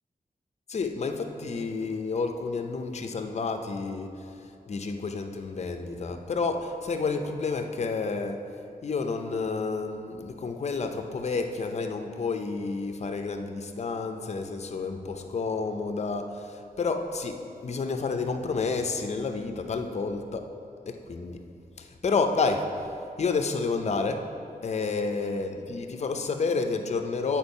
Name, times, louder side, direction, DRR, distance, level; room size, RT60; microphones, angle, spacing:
voice 1, 0.7-4.3 4.7-8.4 8.8-20.5 20.9-21.4 21.8-22.7 23.2-24.3 24.6-27.4, left 4 dB, 45° left, 6 dB, 0.5 m, -30 dB
8.8 x 4.5 x 5.3 m, 2.7 s
wide cardioid pair, 160°, 16 cm